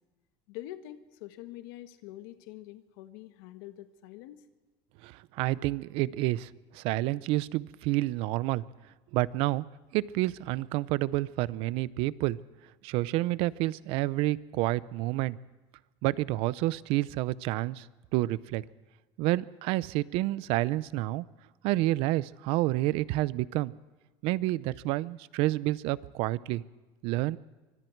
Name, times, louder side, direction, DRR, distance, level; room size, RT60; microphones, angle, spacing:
voice 1, 0.5-4.5, left 14 dB, 85° left, 8 dB, 1.4 m, -45 dB
voice 2, 5.0-8.6 9.1-9.6 9.9-12.4 12.8-15.4 16.0-17.9 18.1-18.6 19.2-21.2 21.6-23.7 24.2-26.6 27.0-27.4, right 17 dB, 60° right, 19 dB, 0.6 m, -29 dB
25.0 x 24.5 x 4.6 m, 1.2 s
cardioid pair, 160°, 11 cm